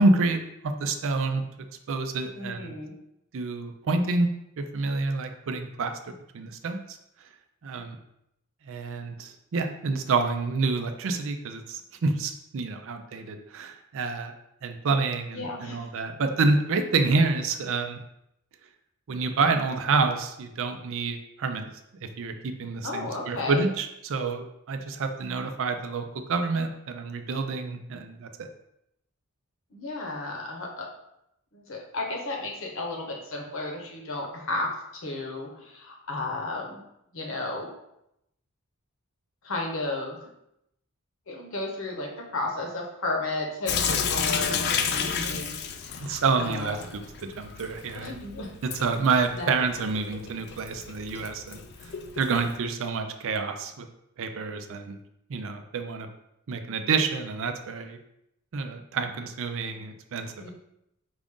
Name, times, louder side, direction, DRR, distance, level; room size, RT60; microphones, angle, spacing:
voice 1, 0.0-1.4 1.9-2.7 3.3-4.3 4.6-5.9 6.3-7.0 7.6-8.0 8.7-14.3 14.6-18.0 19.1-21.7 22.0-28.3 46.0-47.0 47.4-48.2 48.6-53.9 54.2-55.0 55.3-56.1 56.5-58.0 58.5-60.5, right 3 dB, 65° right, 7 dB, 0.5 m, -28 dB
voice 2, 2.3-2.9 15.3-15.9 22.8-23.7 29.7-30.9 31.5-36.8 37.1-37.7 39.4-40.2 41.3-46.8 47.9-48.5 49.4-49.5 60.4-60.5, left 2 dB, 65° left, 0 dB, 0.9 m, -33 dB
Sink (filling or washing) / Drip, 43.7-52.6, left 6 dB, 50° left, 0.4 m, -32 dB
4.9 x 2.5 x 3.6 m, 0.81 s
head